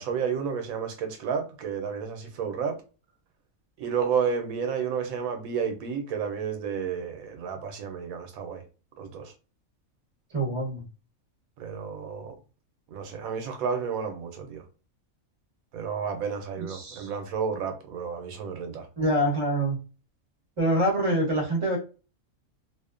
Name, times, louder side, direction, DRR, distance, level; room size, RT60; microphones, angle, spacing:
voice 1, 0.0-2.8 3.8-8.6 9.0-9.3 11.6-12.3 12.9-14.6 15.7-18.9, right 6 dB, 85° right, 1.0 m, -31 dB
voice 2, 10.3-10.8 16.6-17.1 19.0-19.8 20.6-21.8, right 1 dB, 25° right, 0.9 m, -25 dB
2.7 x 2.0 x 2.4 m
omnidirectional pair, 1.4 m